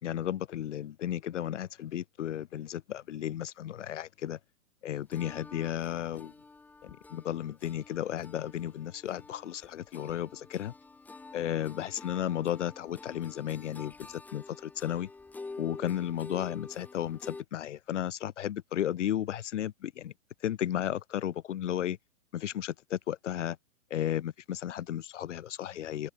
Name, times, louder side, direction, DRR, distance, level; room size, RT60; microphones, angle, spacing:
voice 1, 0.0-4.4 4.8-6.3 6.8-10.7 11.3-15.1 15.6-20.1 20.4-22.0 22.3-23.6 23.9-26.1, left 11 dB, 55° left, 1.4 m, -34 dB
sound 1, 5.1-17.4, left 3 dB, 5° left, 3.2 m, -48 dB
hypercardioid pair, 175°, 44 cm